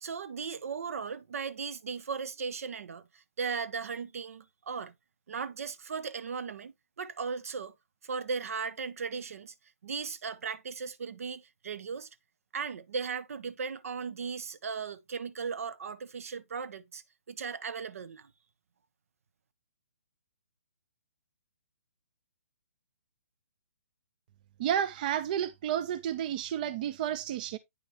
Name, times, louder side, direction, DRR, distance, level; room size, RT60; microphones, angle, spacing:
voice 1, 0.0-4.9 5.3-7.7 8.0-9.5 9.8-12.1 12.5-18.3, right 5 dB, 65° right, 0.9 m, -37 dB
voice 2, 24.6-27.6, right 10 dB, 35° right, 0.5 m, -31 dB
9.3 x 5.2 x 2.9 m
hypercardioid pair, 160°, 8 cm